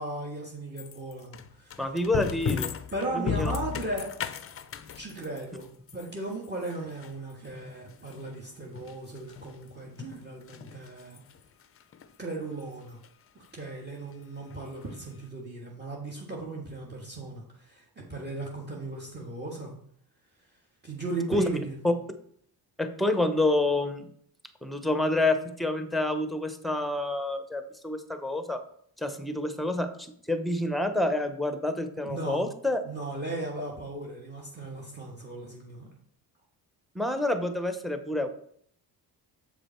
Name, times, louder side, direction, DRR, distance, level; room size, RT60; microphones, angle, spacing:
voice 1, 0.0-1.8 2.9-4.1 4.9-5.7 5.9-11.2 12.2-13.0 13.3-17.8 18.1-19.7 20.8-21.8 32.0-32.4 32.8-35.9, right 2 dB, 25° right, -1 dB, 1.5 m, -36 dB
sound 1, 0.8-9.7 10.0-11.4 11.8-12.1 12.5-12.7 13.0-13.1 13.4-13.5 14.5-14.6 14.8-14.9, left 8 dB, 35° left, 0.5 m, -36 dB
voice 2, 1.8-2.8 3.1-3.5 21.3-21.4 21.8-21.9 22.8-24.1 24.6-28.6 29.0-32.8 36.9-38.3, left 2 dB, ahead, 8 dB, 0.8 m, -28 dB
7.3 x 5.0 x 4.5 m, 0.64 s
cardioid pair, 90°, 42 cm